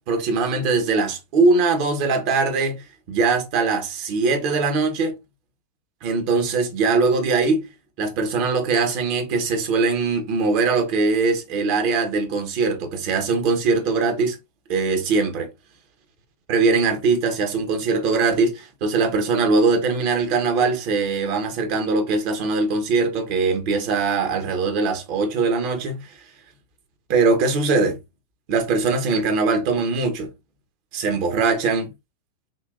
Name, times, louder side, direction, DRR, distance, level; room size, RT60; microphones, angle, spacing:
voice 1, 0.1-5.1 6.0-7.6 8.0-14.4 14.7-15.5 16.5-26.1 27.1-28.0 28.5-30.3 30.9-31.9, right 4 dB, 45° right, 1.3 m, -21 dB
5.9 x 2.8 x 2.6 m
figure-of-eight pair, 90°, 0 cm